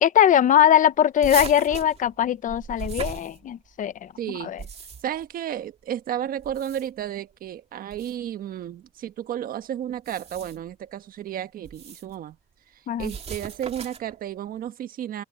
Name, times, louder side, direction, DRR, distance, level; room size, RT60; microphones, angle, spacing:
voice 1, 0.0-4.1 4.4-4.6 12.9-13.1, left 10 dB, 50° left, 0.9 m, -20 dB
sound 1, 1.2-3.8 4.4-5.3 6.4-7.1 7.9-8.2 9.9-10.7 11.6-12.1 13.0-14.2, right 6 dB, 40° right, 2.3 m, -37 dB
voice 2, 4.2-4.5 5.0-12.4 12.7-15.2, right 10 dB, 60° right, 1.4 m, -32 dB
open air
cardioid pair, 110°, 17 cm